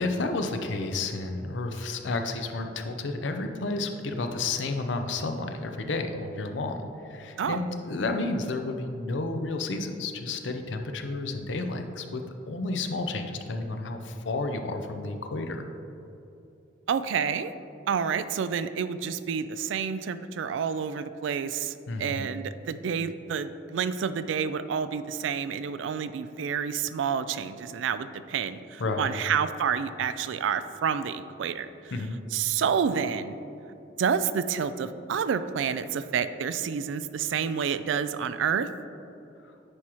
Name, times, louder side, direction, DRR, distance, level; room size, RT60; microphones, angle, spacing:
voice 1, 0.0-6.8 7.0-15.6 21.9-22.3 28.8-29.2 31.9-32.2 39.4-39.5, left 3 dB, 75° left, 6 dB, 0.6 m, -31 dB
voice 2, 16.9-17.5 17.9-31.7 32.3-33.4 34.0-38.7, right 7 dB, 80° right, 13 dB, 0.3 m, -29 dB
9.6 x 4.8 x 3.0 m, 2.8 s
head